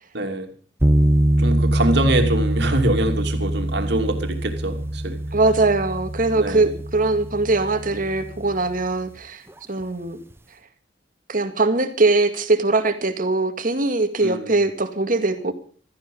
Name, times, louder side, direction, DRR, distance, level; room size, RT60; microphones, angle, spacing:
voice 1, 0.1-0.5 1.4-5.2 6.3-6.8 14.2-14.5, right 1 dB, 60° right, 2.7 m, -24 dB
sound 1, 0.8-9.0, right 1 dB, 15° right, 0.8 m, -23 dB
voice 2, 5.3-9.4 9.7-10.2 11.3-15.5, right 3 dB, 45° right, 2.0 m, -21 dB
16.5 x 14.0 x 5.4 m
head